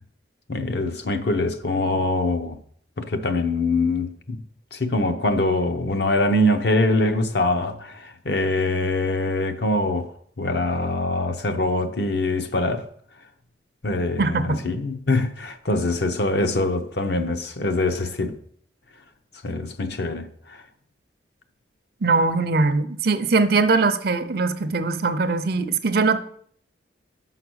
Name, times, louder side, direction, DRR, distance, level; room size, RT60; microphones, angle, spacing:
voice 1, 0.5-2.6 3.0-4.4 4.7-10.1 10.4-12.8 13.8-18.4 19.4-20.6, left 2 dB, 60° left, 0.7 m, -23 dB
voice 2, 14.2-14.6 22.0-26.2, right 3 dB, 50° right, 0.5 m, -21 dB
5.8 x 5.4 x 6.2 m
head